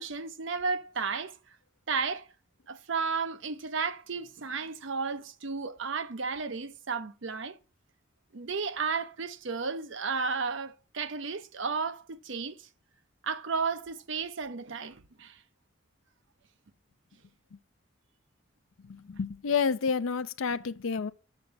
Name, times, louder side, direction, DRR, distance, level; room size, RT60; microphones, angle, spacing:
voice 1, 0.0-1.4 1.9-2.3 2.7-7.6 8.3-12.6 13.2-15.4, right 5 dB, 70° right, 0.7 m, -33 dB
voice 2, 18.8-21.1, left 5 dB, 85° left, 0.5 m, -29 dB
7.1 x 5.6 x 5.2 m
head